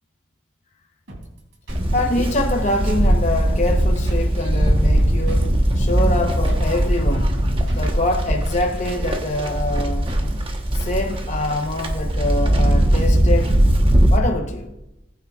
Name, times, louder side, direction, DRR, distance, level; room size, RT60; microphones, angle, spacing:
sound 1, 1.1-10.6, right 1 dB, 80° right, 3.1 m, -40 dB
Livestock farm animals working animals, 1.7-14.2, right 1 dB, 25° right, 1.1 m, -19 dB
voice 1, 1.9-5.5 5.7-7.4 7.7-10.1 10.7-13.6 14.1-14.7, left 2 dB, 35° left, 0.9 m, -25 dB
19.5 x 9.3 x 2.4 m
head